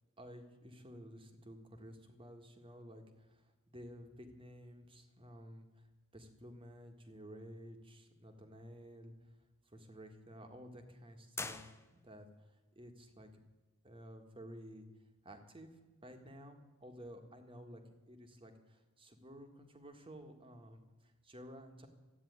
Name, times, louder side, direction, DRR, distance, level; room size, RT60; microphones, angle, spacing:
voice 1, 0.2-5.9 6.1-9.1 9.7-12.5 12.7-13.3 13.8-14.9 15.2-17.8 18.1-21.9, equal, 25° right, 5 dB, 1.7 m, -53 dB
sound 1, 11.4-12.3, left 4 dB, 10° left, 0.6 m, -45 dB
13.5 x 9.5 x 9.5 m, 1.2 s
head